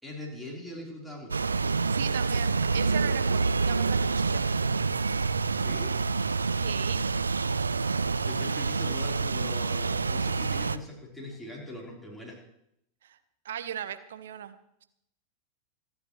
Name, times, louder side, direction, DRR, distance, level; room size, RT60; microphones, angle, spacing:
voice 1, 0.0-1.5 5.6-5.9 8.3-12.4, left 1 dB, ahead, -4 dB, 4.1 m, -41 dB
sound 1, 1.3-10.8, right 4 dB, 75° right, 0.4 m, -27 dB
voice 2, 1.9-4.5 6.6-7.1 13.0-13.2 13.4-14.8, right 9 dB, 60° right, 11 dB, 1.0 m, -38 dB
26.5 x 9.7 x 3.2 m, 0.77 s
figure-of-eight pair, 90°, 0 cm